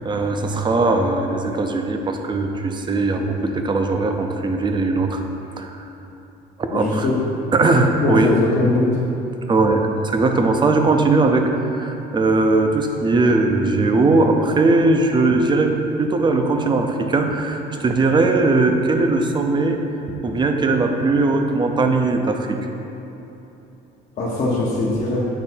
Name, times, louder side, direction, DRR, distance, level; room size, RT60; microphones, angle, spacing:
voice 1, 0.0-5.2 5.6-5.8 6.6-7.1 7.5-8.3 9.5-19.8 20.2-22.6, right 3 dB, 25° right, 4 dB, 0.5 m, -19 dB
voice 2, 6.7-7.2 8.0-8.9 24.1-25.2, left 2 dB, 50° left, -8 dB, 1.0 m, -21 dB
8.2 x 3.3 x 4.4 m, 3.0 s
cardioid pair, 110°, 17 cm